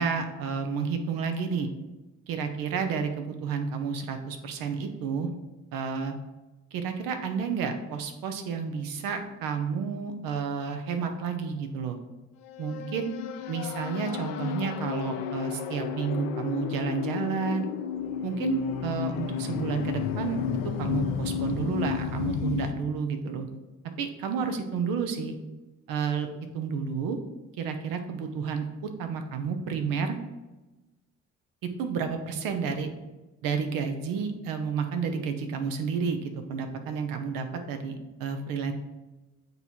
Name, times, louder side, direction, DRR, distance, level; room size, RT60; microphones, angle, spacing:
voice 1, 0.0-1.7 2.3-5.3 5.7-6.1 6.7-12.0 12.6-13.2 13.5-17.7 18.2-20.4 20.8-23.5 24.0-25.3 25.9-26.3 26.5-27.2 27.6-28.7 29.0-30.2 31.8-32.9 33.4-38.7, right 5 dB, 80° right, 6 dB, 0.9 m, -30 dB
sound 1, 12.4-22.7, left 8 dB, 75° left, 0.6 m, -32 dB
8.1 x 2.8 x 4.5 m, 1.1 s
supercardioid pair, 55°, 34 cm